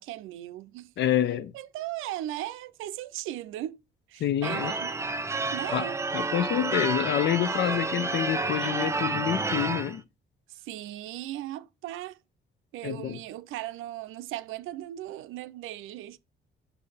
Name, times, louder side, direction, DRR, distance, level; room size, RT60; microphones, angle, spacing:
voice 1, 0.0-0.9 1.5-3.8 4.1-5.2 5.5-6.0 10.5-12.2 12.7-16.2, right 14 dB, 90° right, 0.5 m, -37 dB
voice 2, 1.0-1.5 4.2-4.7 5.7-5.9 6.1-10.0 12.8-13.2, left 11 dB, 60° left, 0.6 m, -27 dB
Church bell / Car / Alarm, 4.4-10.0, right 3 dB, 15° right, 0.4 m, -30 dB
6.4 x 2.7 x 5.5 m
cardioid pair, 90°, 20 cm